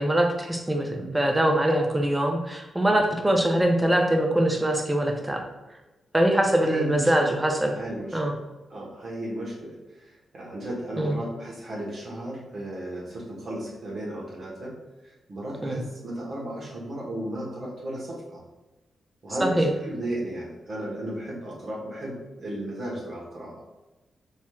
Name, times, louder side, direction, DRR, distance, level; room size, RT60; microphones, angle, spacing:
voice 1, 0.0-5.4 6.1-7.8 8.1-8.3 11.0-11.2 15.6-15.8 19.4-19.7, right 1 dB, 15° right, 2 dB, 0.7 m, -23 dB
voice 2, 6.6-7.1 7.8-8.2 8.7-14.8 15.0-18.4 19.2-23.6, right 1 dB, 60° right, -5 dB, 1.2 m, -35 dB
3.0 x 3.0 x 2.3 m, 1.1 s
supercardioid pair, 40°, 0 cm